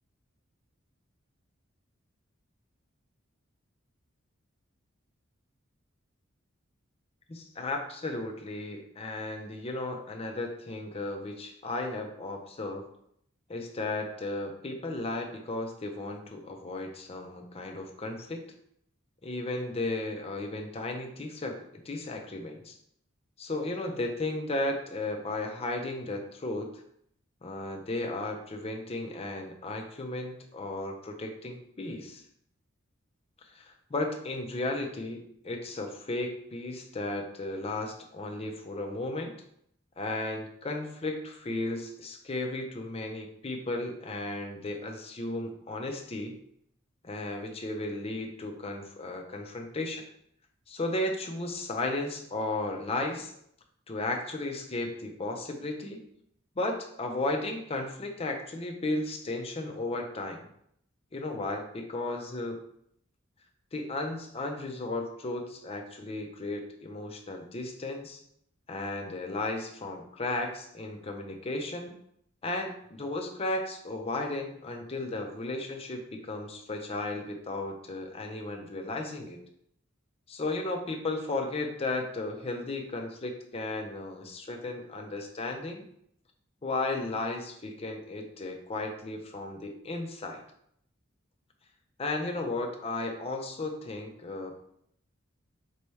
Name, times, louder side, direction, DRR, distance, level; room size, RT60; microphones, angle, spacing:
voice 1, 7.3-12.8 13.5-18.4 19.2-22.7 23.4-26.7 27.4-32.2 33.5-39.3 40.0-46.4 47.0-50.1 50.7-53.3 53.9-56.0 56.6-60.4 61.1-62.6 63.7-68.2 68.7-71.9 72.4-79.4 80.3-85.8 86.6-90.4 92.0-94.6, left 2 dB, 30° left, 3 dB, 0.5 m, -34 dB
4.5 x 2.8 x 3.2 m, 0.70 s
head